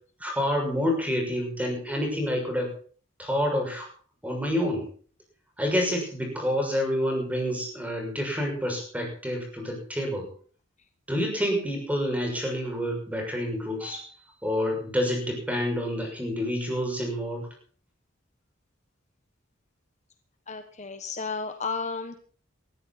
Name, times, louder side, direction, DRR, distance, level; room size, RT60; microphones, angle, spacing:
voice 1, 0.2-2.7 3.2-3.9 4.2-4.9 5.6-10.3 11.1-17.5, equal, 5° right, 2 dB, 6.5 m, -28 dB
voice 2, 20.5-22.2, left 4 dB, 35° left, 7 dB, 1.3 m, -33 dB
19.5 x 13.5 x 4.2 m, 0.44 s
head